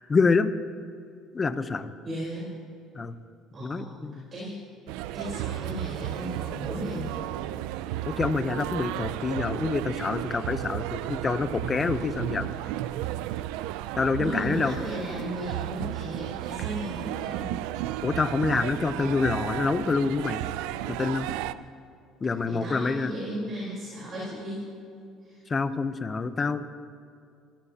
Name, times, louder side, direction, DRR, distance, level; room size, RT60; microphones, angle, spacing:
voice 1, 0.1-0.5 1.3-1.9 3.0-3.1 3.6-4.3 8.0-12.5 13.9-14.8 18.0-20.4 20.9-21.3 22.2-23.1 25.5-26.7, left 4 dB, 25° left, 11 dB, 0.8 m, -27 dB
voice 2, 2.0-2.6 3.5-4.0 4.3-4.6 5.1-7.2 14.2-17.6 22.4-24.7 25.2-25.4, right 1 dB, 35° right, -6 dB, 4.1 m, -35 dB
sound 1, 4.9-21.5, right 14 dB, 90° right, 0.4 m, -33 dB
25.0 x 15.0 x 2.9 m, 2.4 s
cardioid pair, 115°, 0 cm